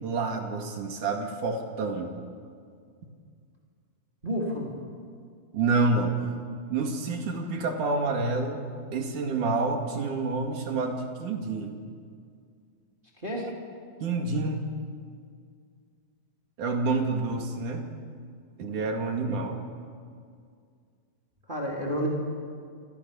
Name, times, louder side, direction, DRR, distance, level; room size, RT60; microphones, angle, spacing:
voice 1, 0.0-2.1 5.5-6.1 6.7-8.7 8.9-11.8 14.0-14.7 16.6-17.9 18.6-19.6, right 3 dB, 60° right, 4 dB, 3.6 m, -28 dB
voice 2, 4.2-4.7 13.2-13.5 21.5-22.1, equal, 15° right, -2 dB, 3.8 m, -30 dB
28.0 x 26.5 x 7.1 m, 2.2 s
omnidirectional pair, 4.2 m